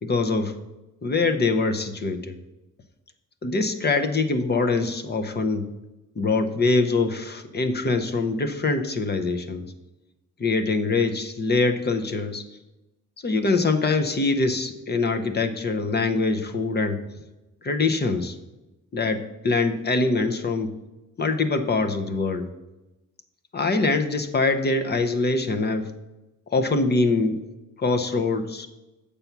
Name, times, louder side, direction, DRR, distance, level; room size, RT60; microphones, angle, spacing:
voice 1, 0.0-0.6 1.0-2.4 3.4-5.7 6.2-9.7 10.4-12.4 13.2-17.0 17.6-18.4 18.9-20.7 21.2-22.5 23.5-25.9 26.5-27.5 27.8-28.7, left 3 dB, 30° left, 6 dB, 0.7 m, -24 dB
8.5 x 6.9 x 5.9 m, 1.0 s
wide cardioid pair, 160°, 32 cm